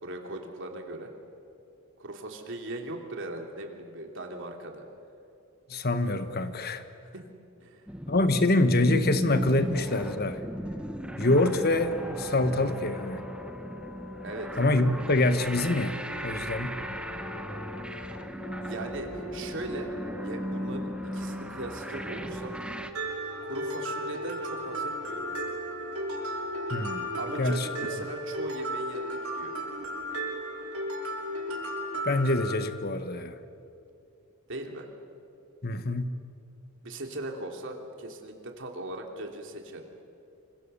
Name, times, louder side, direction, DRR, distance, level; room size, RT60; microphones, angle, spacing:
voice 1, 0.0-1.1 2.0-4.8 7.1-7.2 7.6-7.9 14.2-14.6 18.6-19.9 20.2-22.5 23.5-25.3 27.2-29.5 34.5-34.9 36.8-39.8, right 1 dB, 60° right, 2 dB, 3.2 m, -39 dB
voice 2, 5.7-6.8 8.1-10.4 11.2-13.2 14.6-16.8 26.7-27.1 27.4-27.7 32.0-33.4 35.6-36.1, left 2 dB, 45° left, 10 dB, 1.4 m, -25 dB
sound 1, 7.9-22.9, equal, 5° right, 1.1 m, -36 dB
sound 2, 11.4-27.4, left 1 dB, 85° left, 1.7 m, -45 dB
Mallet percussion, 22.9-32.5, right 1 dB, 85° right, 6.5 m, -34 dB
27.5 x 25.0 x 7.0 m, 2.7 s
head